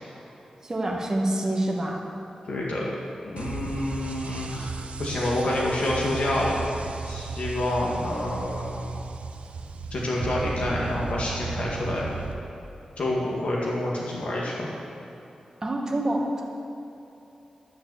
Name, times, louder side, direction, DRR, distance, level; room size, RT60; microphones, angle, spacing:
voice 1, 0.6-2.0 15.6-16.4, right 1 dB, 25° right, -1 dB, 1.5 m, -26 dB
voice 2, 2.5-2.9 3.2-4.7 5.0-6.6 7.0-9.0 9.9-12.1 13.0-14.7, left 1 dB, 70° left, -4 dB, 1.9 m, -28 dB
sound 1, 3.4-12.3, right 4 dB, 75° right, 0.6 m, -35 dB
11.5 x 6.7 x 7.1 m, 2.9 s
wide cardioid pair, 160°, 2 cm